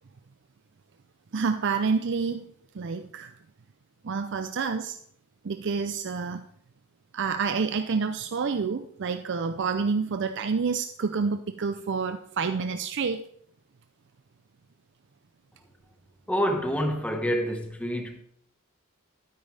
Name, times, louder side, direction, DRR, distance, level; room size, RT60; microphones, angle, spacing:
voice 1, 1.3-3.3 4.0-5.0 5.4-6.4 7.1-13.2, right 5 dB, 55° right, 0.5 m, -28 dB
voice 2, 16.3-18.2, equal, 5° left, 1.3 m, -27 dB
13.0 x 9.2 x 3.3 m
head